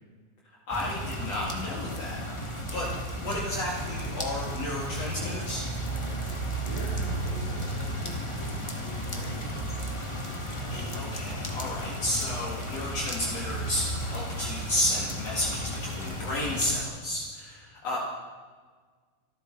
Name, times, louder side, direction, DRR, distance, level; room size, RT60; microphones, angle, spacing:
voice 1, 0.7-5.7 10.7-18.0, left 1 dB, 55° left, -5 dB, 3.2 m, -32 dB
sound 1, 0.7-16.8, right 1 dB, 15° left, 1.2 m, -34 dB
voice 2, 6.6-9.9, left 2 dB, 40° left, -8 dB, 4.7 m, -41 dB
26.0 x 13.0 x 4.0 m, 1.5 s
omnidirectional pair, 3.5 m